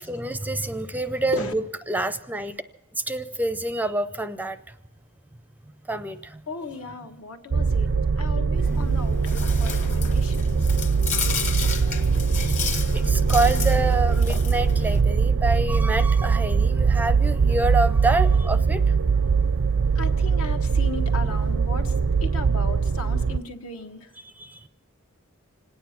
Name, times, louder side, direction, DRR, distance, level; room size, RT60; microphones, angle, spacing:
voice 1, 0.0-2.5 3.0-4.6 5.9-6.4 12.3-18.8 24.4-24.6, right 2 dB, 10° right, 12 dB, 0.5 m, -27 dB
voice 2, 6.5-7.9 8.2-10.8 19.9-24.1, left 3 dB, 75° left, 6 dB, 1.3 m, -36 dB
sound 1, 7.5-23.4, right 5 dB, 60° right, 0.4 m, -22 dB
Chewing mastication, 8.6-15.0, left 4 dB, 35° left, 1.2 m, -32 dB
26.0 x 9.5 x 5.9 m, 0.93 s
head